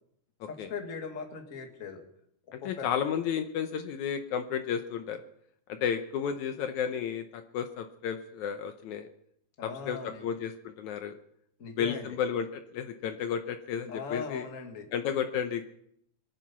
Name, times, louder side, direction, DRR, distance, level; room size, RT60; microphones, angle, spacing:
voice 1, 0.5-2.0 2.6-2.9 9.6-10.3 11.6-12.1 13.9-14.9, left 5 dB, 30° left, 4 dB, 1.7 m, -39 dB
voice 2, 2.5-5.2 5.7-9.1 9.6-11.2 11.8-14.5 14.9-15.6, left 8 dB, 75° left, 7 dB, 2.1 m, -32 dB
25.0 x 9.2 x 5.9 m, 0.71 s
omnidirectional pair, 3.7 m